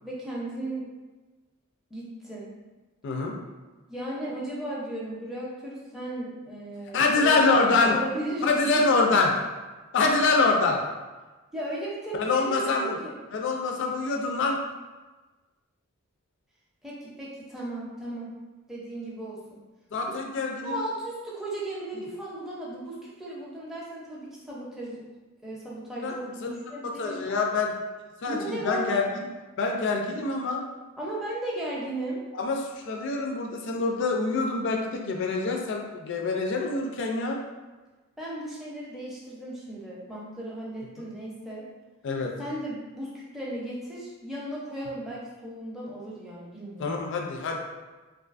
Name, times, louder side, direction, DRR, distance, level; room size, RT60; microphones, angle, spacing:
voice 1, 0.0-0.9 1.9-2.5 3.9-8.8 11.5-13.2 16.8-18.3 18.7-19.4 20.6-25.0 25.4-27.5 28.3-28.9 31.0-32.2 38.2-41.6 42.4-47.0, right 1 dB, ahead, -6 dB, 0.5 m, -35 dB
voice 2, 3.0-3.3 6.9-8.0 8.4-9.3 9.9-10.8 12.1-13.0 13.3-14.6 19.9-20.8 21.9-22.0 26.0-26.1 27.0-27.7 28.2-29.3 29.6-30.6 32.3-37.4 42.0-42.3 46.8-47.6, left 3 dB, 55° left, 1 dB, 0.3 m, -25 dB
2.5 x 2.4 x 2.4 m, 1.2 s
head